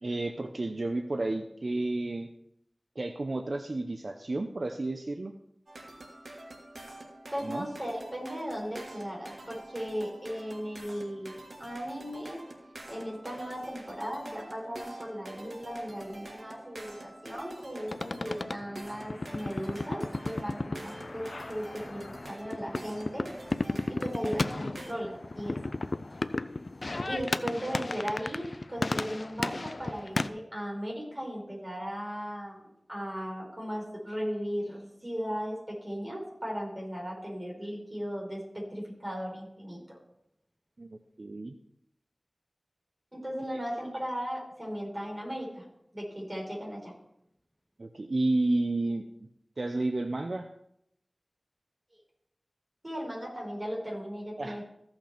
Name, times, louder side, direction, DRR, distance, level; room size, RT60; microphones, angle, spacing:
voice 1, 0.0-2.3 3.0-5.3 7.4-7.7 40.8-41.5 47.8-49.0 49.6-50.5 54.4-54.6, right 2 dB, 65° right, 5 dB, 0.6 m, -31 dB
sound 1, 5.7-24.9, right 1 dB, 80° right, 1.5 m, -46 dB
voice 2, 7.3-12.4 12.9-23.3 23.9-25.6 27.1-40.0 43.1-45.7 45.9-46.9 52.8-54.6, equal, 25° right, -3 dB, 4.9 m, -37 dB
sound 2, 17.9-30.3, left 2 dB, 65° left, 0.4 m, -35 dB
15.0 x 5.9 x 4.4 m, 0.76 s
wide cardioid pair, 60°, 0 cm